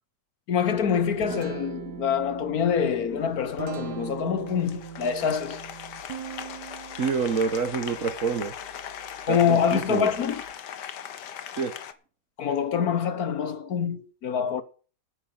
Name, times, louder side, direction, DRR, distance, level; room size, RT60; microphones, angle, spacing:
voice 1, 0.5-5.6 9.3-10.4 12.4-14.6, left 7 dB, 65° left, 1.5 m, -25 dB
Guitar, 0.8-10.5, right 9 dB, 75° right, 1.4 m, -41 dB
Applause, 2.8-11.9, left 9 dB, 85° left, 1.6 m, -40 dB
voice 2, 7.0-8.6 9.3-10.1 11.6-11.7, right 5 dB, 55° right, 1.4 m, -27 dB
9.8 x 9.3 x 7.9 m
omnidirectional pair, 1.8 m